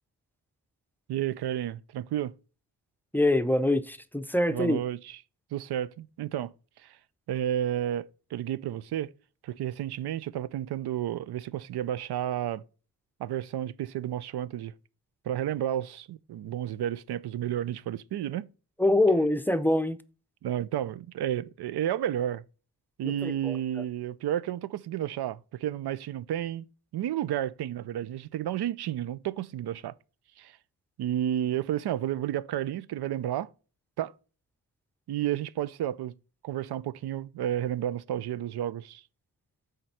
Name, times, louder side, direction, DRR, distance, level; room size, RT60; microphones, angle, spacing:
voice 1, 1.1-2.3 4.5-5.2 5.5-6.5 6.8-7.0 7.3-9.1 9.4-12.6 13.2-14.7 15.2-18.5 20.4-22.4 23.0-26.6 26.9-29.9 30.4-30.5 31.0-33.5 34.0-34.1 35.1-36.1 36.4-39.0, right 11 dB, 80° right, 0.6 m, -31 dB
voice 2, 3.1-4.8 18.8-20.0 23.0-23.6, left 1 dB, 5° left, 0.6 m, -24 dB
7.7 x 5.2 x 4.2 m
cardioid pair, 90°, 38 cm